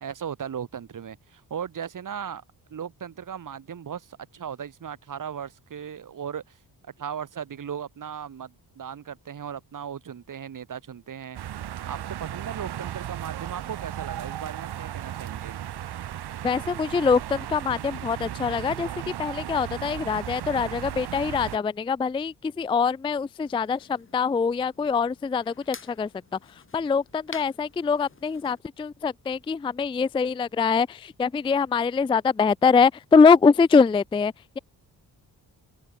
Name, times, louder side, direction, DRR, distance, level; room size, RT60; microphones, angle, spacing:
voice 1, 0.0-2.4 2.7-11.4 11.9-15.5, right 8 dB, 50° right, 2.2 m, -37 dB
sound 1, 11.3-21.6, right 11 dB, 70° right, 1.3 m, -35 dB
voice 2, 16.4-18.9 19.2-26.1 26.7-34.6, left 5 dB, 15° left, 0.3 m, -23 dB
sound 2, 23.4-28.6, left 5 dB, 30° left, 3.6 m, -48 dB
wide cardioid pair, 135°, 41 cm